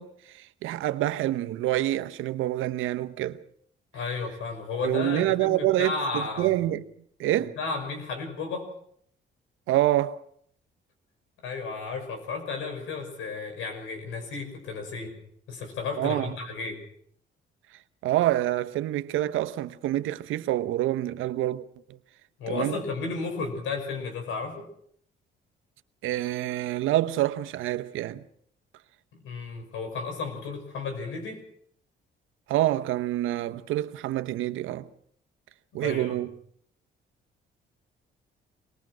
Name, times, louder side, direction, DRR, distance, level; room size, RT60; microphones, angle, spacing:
voice 1, 0.0-3.4 4.8-6.9 7.2-7.6 9.7-10.2 16.0-16.3 18.0-22.0 22.5-22.8 26.0-28.2 32.5-34.9 35.7-36.3, right 14 dB, 90° right, 0.9 m, -27 dB
voice 2, 3.9-6.5 7.6-8.7 11.4-15.1 15.5-16.8 22.4-24.7 29.1-31.4 35.8-36.2, left 4 dB, 85° left, 6.0 m, -33 dB
24.5 x 20.0 x 6.2 m
cardioid pair, 90°, 20 cm